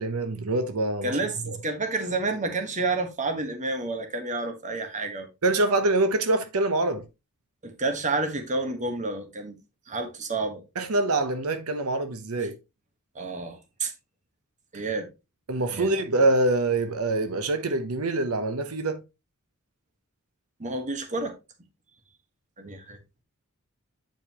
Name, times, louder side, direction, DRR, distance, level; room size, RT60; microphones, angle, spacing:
voice 1, 0.0-1.1 5.4-7.1 10.8-12.5 15.5-19.0, right 2 dB, 85° right, 0.9 m, -25 dB
voice 2, 1.0-5.3 7.6-9.6 9.9-10.6 13.1-13.9 14.7-15.1 15.7-15.9 20.6-21.3 22.6-23.0, right 3 dB, 35° right, 1.3 m, -30 dB
8.9 x 5.2 x 2.9 m
head